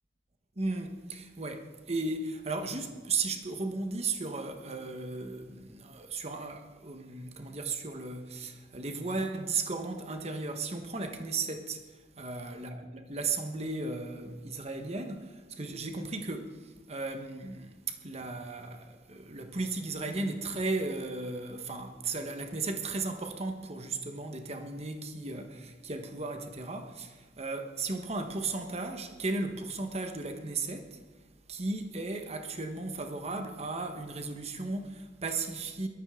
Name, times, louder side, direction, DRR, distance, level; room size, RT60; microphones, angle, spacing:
voice 1, 0.6-31.0 31.5-35.9, right 3 dB, 35° right, 1.2 m, -35 dB
21.5 x 13.0 x 3.7 m
head